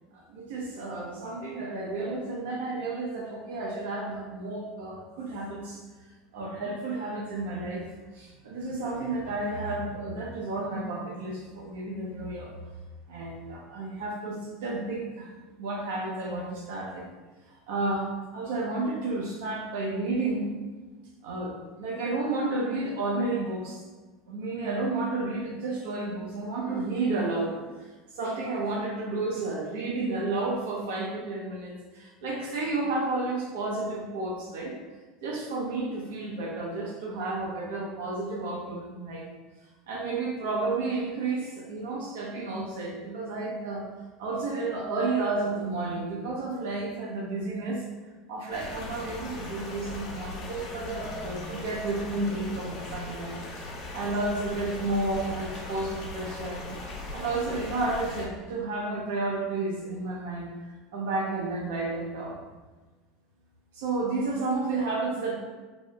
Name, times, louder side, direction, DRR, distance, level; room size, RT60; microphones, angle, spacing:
voice 1, 0.1-5.8 6.3-7.9 8.1-12.5 13.1-15.3 15.6-17.1 17.7-20.5 21.2-23.8 24.3-27.6 28.1-34.8 35.2-39.3 39.9-43.9 44.2-47.8 48.3-53.6 53.9-56.7 57.1-60.5 60.9-62.4 63.7-65.3, right 2 dB, 80° right, -1 dB, 0.9 m, -31 dB
sound 1, 48.5-58.3, left 2 dB, 60° left, 1.0 m, -39 dB
4.1 x 2.0 x 3.4 m, 1.3 s
hypercardioid pair, 95°, 0 cm